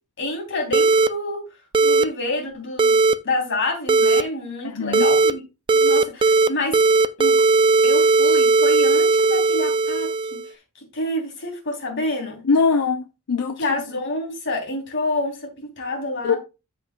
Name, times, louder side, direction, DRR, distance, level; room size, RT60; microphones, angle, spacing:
voice 1, 0.2-1.4 1.8-3.0 3.2-5.4 5.7-6.8 7.2-7.3 7.8-12.4 13.6-16.4, left 2 dB, 55° left, 3.1 m, -28 dB
sound 1, 0.7-1.1 1.7-2.0 2.8-3.1 3.9-4.2 4.9-5.3 5.7-6.5 6.7-10.5, right 3 dB, 20° right, 0.3 m, -17 dB
voice 2, 4.6-5.1 12.4-13.8 16.2-16.4, left 4 dB, 90° left, 0.6 m, -22 dB
12.5 x 5.4 x 2.2 m
head